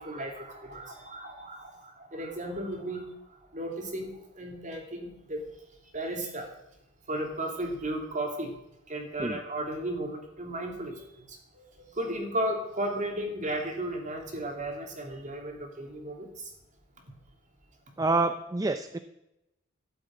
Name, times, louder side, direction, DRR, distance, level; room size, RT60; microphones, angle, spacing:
voice 1, 0.0-3.1 3.5-5.4 5.9-6.5 7.1-8.5 8.9-11.4 11.7-16.5, right 1 dB, 35° right, 2 dB, 2.8 m, -34 dB
voice 2, 18.0-19.0, right 3 dB, 15° right, 9 dB, 0.5 m, -27 dB
13.5 x 7.7 x 9.1 m, 0.88 s
head